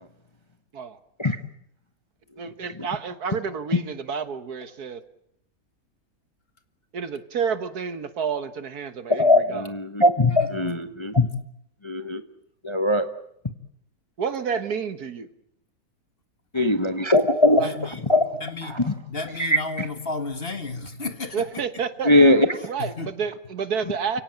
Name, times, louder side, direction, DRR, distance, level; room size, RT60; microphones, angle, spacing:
voice 1, 2.4-5.0 6.9-9.7 14.2-15.3 17.6-17.7 21.3-22.1 22.6-24.2, right 6 dB, 65° right, 1.8 m, -29 dB
voice 2, 9.1-11.3 11.8-12.2 12.6-13.1 16.5-17.6 18.1-18.2 18.7-18.9 19.4-19.8 22.0-22.7, left 1 dB, 20° left, 1.1 m, -20 dB
voice 3, 17.6-18.0 18.4-18.8 19.1-21.6 22.8-23.1, left 3 dB, 35° left, 1.8 m, -33 dB
29.5 x 17.5 x 9.1 m
omnidirectional pair, 1.8 m